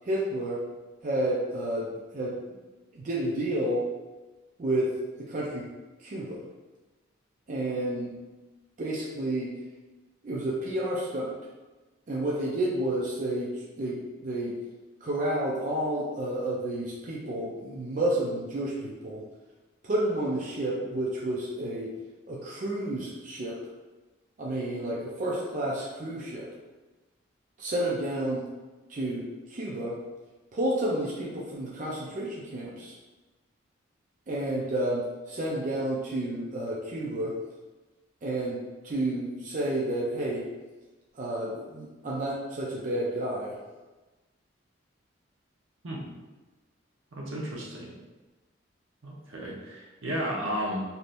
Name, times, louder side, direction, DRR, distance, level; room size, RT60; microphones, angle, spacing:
voice 1, 0.1-0.6 1.0-2.3 2.9-3.8 4.6-5.7 6.0-6.4 7.5-8.1 8.8-9.5 10.2-11.3 12.1-13.5 13.8-14.5 15.0-19.2 19.8-21.9 22.3-23.6 24.4-26.5 27.6-28.4 28.9-29.2 29.5-30.0 30.5-32.9 34.3-37.3 38.2-40.4 41.1-43.5, right 1 dB, 40° right, -5 dB, 0.4 m, -30 dB
voice 2, 47.1-47.9 49.0-50.8, equal, 80° right, -3 dB, 0.8 m, -33 dB
3.3 x 2.7 x 2.5 m, 1.2 s
head